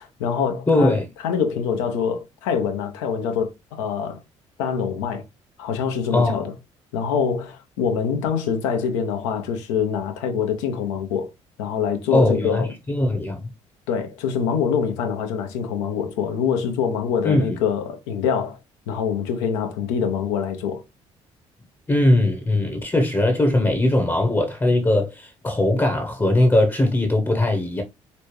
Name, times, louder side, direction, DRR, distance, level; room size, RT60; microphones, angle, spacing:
voice 1, 0.0-1.0 1.2-4.2 4.6-5.2 5.6-6.5 6.9-11.3 11.6-12.7 13.9-18.6 18.9-20.8, left 7 dB, 65° left, 0.9 m, -25 dB
voice 2, 0.7-1.1 6.1-6.5 12.1-13.5 17.2-17.6 21.9-27.8, left 1 dB, 15° left, 1.0 m, -20 dB
4.2 x 3.2 x 3.2 m
figure-of-eight pair, 50°, 16 cm